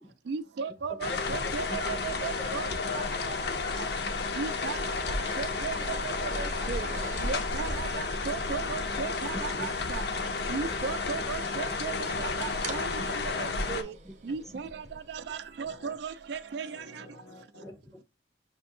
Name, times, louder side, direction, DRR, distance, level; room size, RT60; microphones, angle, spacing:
voice 1, 0.3-2.7 4.4-4.8 5.4-5.7 6.2-6.9 7.2-10.0 10.5-12.9 13.4-13.9 14.3-14.8 15.1-16.7, right 5 dB, 65° right, 0.3 m, -36 dB
sound 1, 1.0-13.8, left 3 dB, 60° left, 0.6 m, -32 dB
voice 2, 1.1-5.0 5.8-7.2 9.7-9.8 13.5-13.7 14.3-14.4 15.7-15.9 16.6-17.7, left 3 dB, 85° left, 1.7 m, -44 dB
sound 2, 4.6-15.4, right 3 dB, 40° right, 0.8 m, -46 dB
voice 3, 9.3-9.7 10.1-10.8 12.2-12.3 13.0-13.1 14.0-14.1 14.4-14.7 17.6-18.0, equal, ahead, 0.4 m, -44 dB
6.1 x 2.6 x 2.6 m
head